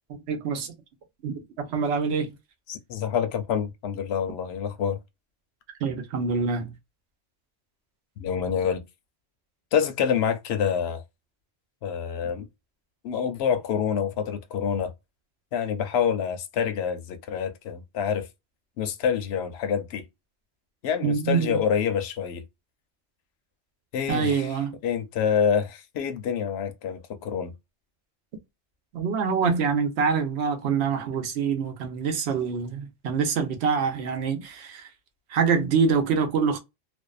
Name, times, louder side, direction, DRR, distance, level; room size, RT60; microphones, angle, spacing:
voice 1, 0.3-0.7 1.2-2.3 5.8-6.7 21.0-21.6 24.1-24.8 28.9-34.9 35.3-36.6, right 5 dB, 65° right, 0.9 m, -25 dB
voice 2, 2.7-5.0 8.2-8.8 9.7-11.0 11.8-12.4 13.0-14.9 15.5-18.3 18.8-20.0 20.8-22.4 23.9-24.6 24.8-27.5, left 7 dB, 65° left, 0.8 m, -27 dB
2.6 x 2.1 x 2.3 m
omnidirectional pair, 1.2 m